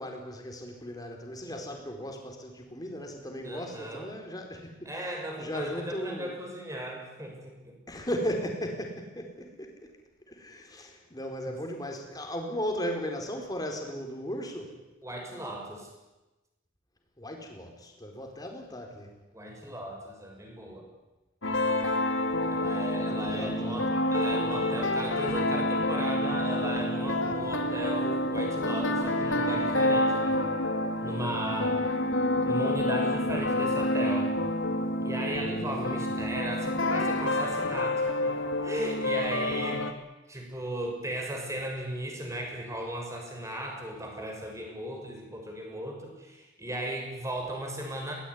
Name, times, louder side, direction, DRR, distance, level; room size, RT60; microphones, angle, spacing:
voice 1, 0.0-6.4 7.9-9.9 10.3-14.8 17.2-19.1 23.0-23.8 35.6-36.1, equal, 20° left, 2 dB, 4.7 m, -36 dB
voice 2, 3.4-4.1 4.8-7.8 15.0-15.9 19.3-20.9 22.5-30.4 31.0-31.8 32.4-34.4 35.0-39.9 40.3-48.1, right 1 dB, 15° right, 1 dB, 6.3 m, -36 dB
sound 1, 21.4-39.9, left 1 dB, 80° left, 2.5 m, -28 dB
22.5 x 19.0 x 9.8 m, 1.1 s
head